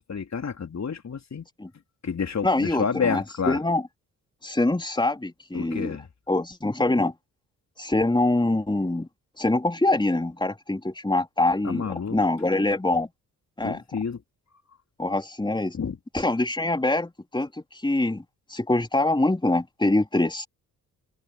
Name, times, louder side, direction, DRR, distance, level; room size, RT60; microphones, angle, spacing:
voice 1, 0.0-1.4 2.0-3.6 5.5-6.1 11.6-12.2 13.6-14.2 15.7-16.0, left 6 dB, 35° left, 3.6 m, -29 dB
voice 2, 2.4-3.8 4.4-6.0 6.3-7.1 7.8-9.1 9.4-13.1 13.6-13.8 15.0-15.8 16.1-18.2 18.5-20.5, left 2 dB, 10° left, 3.6 m, -24 dB
figure-of-eight pair, 40°, 45 cm